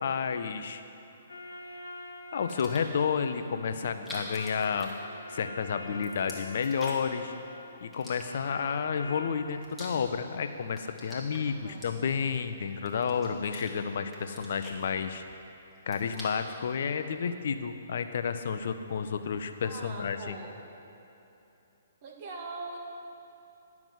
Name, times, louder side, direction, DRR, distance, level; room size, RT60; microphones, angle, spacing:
voice 1, 0.0-0.8 2.3-4.9 5.3-7.3 7.8-15.2 15.9-20.4, left 6 dB, 60° left, 8 dB, 0.7 m, -31 dB
sound 1, 1.3-9.5, left 3 dB, 80° left, 0.9 m, -45 dB
sound 2, 2.5-3.0 3.9-5.5 5.8-7.2 7.9-8.7 9.3-10.4 10.7-12.4 12.9-13.7 14.1-15.4 15.7-16.6, left 1 dB, ahead, 1.9 m, -46 dB
voice 2, 11.5-12.0 19.6-20.6 22.0-22.8, right 3 dB, 40° right, 0 dB, 1.9 m, -42 dB
11.0 x 6.0 x 8.0 m, 3.0 s
figure-of-eight pair, 130°, 0 cm